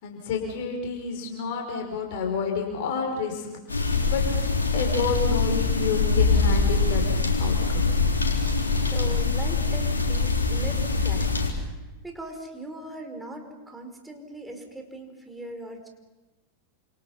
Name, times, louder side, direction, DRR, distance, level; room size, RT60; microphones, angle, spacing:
voice 1, 0.0-3.5 3.7-4.2 4.7-7.0 7.4-8.0, left 5 dB, 50° left, 1 dB, 5.4 m, -30 dB
sound 1, 3.7-11.5, left 4 dB, 75° left, 4.0 m, -23 dB
voice 2, 8.8-11.8 12.0-15.9, right 1 dB, 5° right, 3 dB, 4.9 m, -40 dB
29.5 x 27.5 x 5.7 m, 1.1 s
figure-of-eight pair, 90°, 0 cm